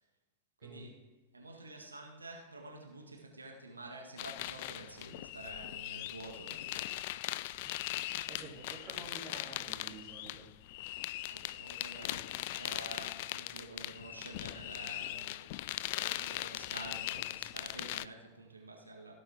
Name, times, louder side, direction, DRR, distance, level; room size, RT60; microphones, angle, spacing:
voice 1, 0.6-1.1 1.3-7.0 11.2-15.6 16.0-19.1, right 2 dB, 80° right, 1 dB, 1.9 m, -49 dB
sound 1, 4.2-18.0, left 16 dB, 50° left, 0.3 m, -40 dB
voice 2, 8.0-10.5, right 3 dB, 35° right, -5 dB, 2.9 m, -50 dB
17.0 x 7.6 x 3.8 m, 1.2 s
figure-of-eight pair, 90°, 0 cm